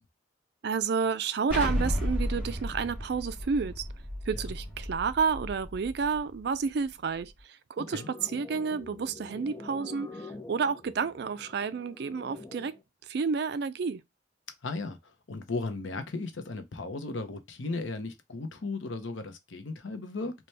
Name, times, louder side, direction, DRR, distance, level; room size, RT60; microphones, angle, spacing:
voice 1, 0.6-3.8 4.3-12.8 13.0-14.0, right 5 dB, 60° right, 0.4 m, -30 dB
Explosion, 1.5-6.2, equal, 5° right, 2.4 m, -33 dB
voice 2, 7.8-8.1 14.6-20.3, left 3 dB, 90° left, 0.7 m, -36 dB
sound 1, 7.8-12.8, left 3 dB, 20° left, 0.5 m, -46 dB
4.1 x 2.2 x 3.2 m
head